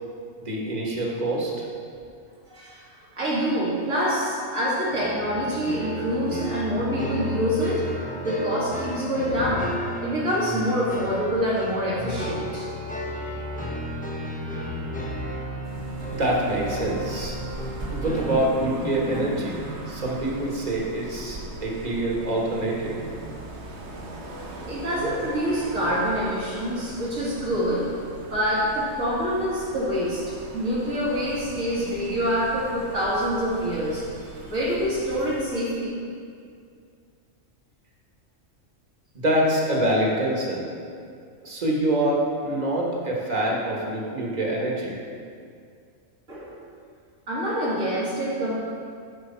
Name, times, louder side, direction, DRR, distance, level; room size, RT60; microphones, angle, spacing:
voice 1, 0.4-1.7 16.1-17.3 17.9-19.6 19.9-23.0 39.1-40.7 41.4-45.0, right 1 dB, 35° right, -3 dB, 1.4 m, -25 dB
voice 2, 2.5-2.9 3.1-7.9 8.2-9.7 10.0-12.7 24.7-27.9 28.3-34.0 34.5-36.0 46.3-46.7 47.3-48.6, equal, 80° right, -7 dB, 2.5 m, -26 dB
sound 1, 4.9-19.3, equal, 10° left, 0.7 m, -33 dB
sound 2, 15.6-35.4, right 2 dB, 60° right, 1.2 m, -39 dB
11.0 x 5.0 x 4.4 m, 2.3 s
omnidirectional pair, 1.3 m